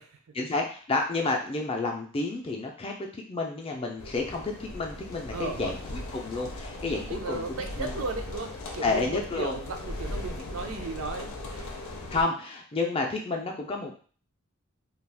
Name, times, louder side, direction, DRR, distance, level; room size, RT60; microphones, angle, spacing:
voice 1, 0.3-5.8 6.1-7.4 7.8-7.9 8.8-9.5 12.1-13.9, left 3 dB, 25° left, 1 dB, 0.4 m, -30 dB
sound 1, 4.0-12.2, left 1 dB, 80° left, 0.6 m, -38 dB
voice 2, 5.3-5.7 7.0-11.7, right 3 dB, 70° right, 5 dB, 0.4 m, -36 dB
2.4 x 2.3 x 3.3 m, 0.41 s
head